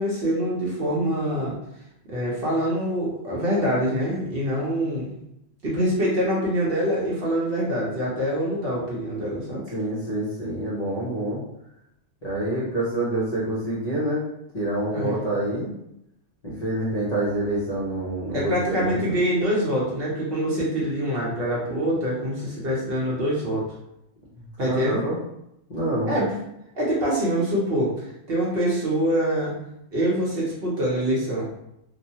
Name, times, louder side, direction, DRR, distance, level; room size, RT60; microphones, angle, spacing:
voice 1, 0.0-1.6 2.1-5.2 5.6-9.6 14.9-15.2 18.3-23.7 24.6-25.0 26.1-26.4 26.7-29.5 29.9-31.5, equal, 55° right, -5 dB, 0.9 m, -25 dB
voice 2, 9.7-11.4 12.2-14.2 14.5-15.7 16.4-19.2 24.6-25.2 25.7-26.2, right 1 dB, 40° left, -9 dB, 0.7 m, -27 dB
3.0 x 2.1 x 2.7 m, 0.81 s
omnidirectional pair, 1.3 m